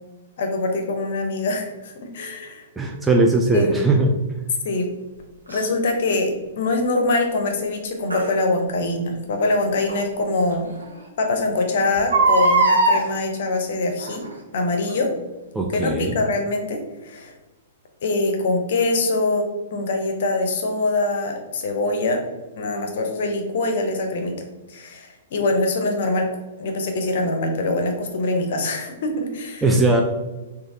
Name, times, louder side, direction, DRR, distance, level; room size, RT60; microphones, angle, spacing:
voice 1, 0.4-2.7 3.5-3.8 4.6-4.9 5.5-10.7 11.2-14.2 14.5-15.1 15.7-17.3 18.0-22.2 22.6-24.3 24.7-26.3 26.6-29.6, left 2 dB, 55° left, 4 dB, 0.6 m, -23 dB
voice 2, 2.8-4.1 15.6-16.1 29.6-30.0, right 2 dB, 10° right, 0 dB, 0.3 m, -19 dB
Crying sobbing, 5.5-5.6 8.1-8.3 9.9-10.0 10.5-10.6 10.8-10.9 12.0-13.0 14.0-14.3 14.9-15.0, right 2 dB, 85° right, 0.6 m, -19 dB
3.1 x 2.3 x 2.6 m, 1.1 s
figure-of-eight pair, 110°, 0 cm